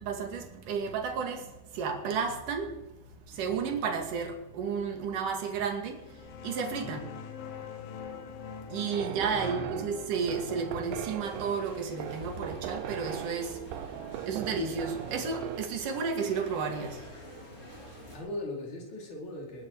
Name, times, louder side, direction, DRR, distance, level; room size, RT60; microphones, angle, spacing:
voice 1, 0.0-2.8 3.3-7.0 8.7-13.6 14.2-17.1, right 5 dB, 65° right, 3.7 m, -32 dB
sound 1, 5.9-15.2, left 7 dB, 75° left, 3.2 m, -46 dB
voice 2, 6.8-7.1 9.0-10.0 18.1-19.7, left 1 dB, 55° left, 6.2 m, -41 dB
sound 2, 8.9-15.7, right 10 dB, 85° right, 2.7 m, -39 dB
sound 3, 11.2-18.2, equal, 15° left, 5.0 m, -47 dB
20.5 x 13.0 x 4.9 m
omnidirectional pair, 4.1 m